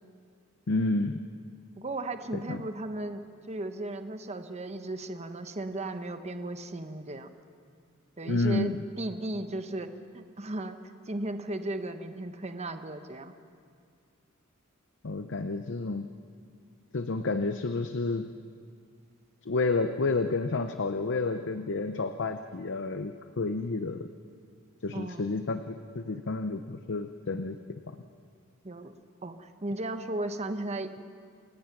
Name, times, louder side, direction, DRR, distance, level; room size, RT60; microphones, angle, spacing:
voice 1, 0.7-1.2 2.3-2.6 8.3-8.8 15.0-16.1 16.9-18.3 19.5-24.1 24.8-27.6, left 3 dB, 60° left, 8 dB, 0.7 m, -30 dB
voice 2, 1.8-7.3 8.2-9.9 10.1-10.8 11.1-13.3 24.9-25.3 28.6-28.9 29.2-30.9, right 2 dB, 30° right, 8 dB, 1.0 m, -35 dB
27.5 x 16.5 x 6.0 m, 2.2 s
head